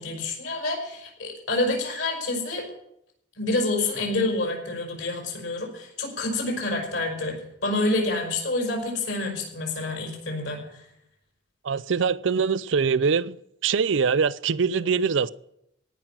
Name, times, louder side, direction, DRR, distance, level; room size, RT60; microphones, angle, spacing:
voice 1, 0.0-2.7 3.4-10.8, left 2 dB, 65° left, 5.6 m, -28 dB
voice 2, 11.6-13.3 13.6-15.3, right 5 dB, 65° right, 0.5 m, -23 dB
18.0 x 6.1 x 8.7 m
head